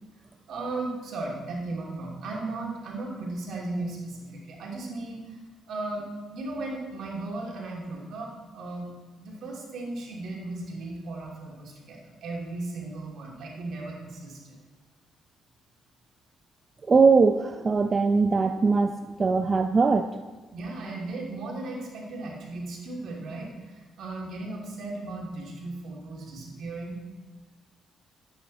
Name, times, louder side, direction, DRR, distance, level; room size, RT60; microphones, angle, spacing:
voice 1, 0.5-5.4 5.7-8.9 9.2-14.6 20.5-27.0, right 2 dB, 70° right, -2 dB, 2.9 m, -36 dB
voice 2, 16.9-20.1, right 4 dB, 35° right, 7 dB, 0.5 m, -21 dB
10.5 x 8.7 x 4.2 m, 1.3 s
cardioid pair, 90°, 0 cm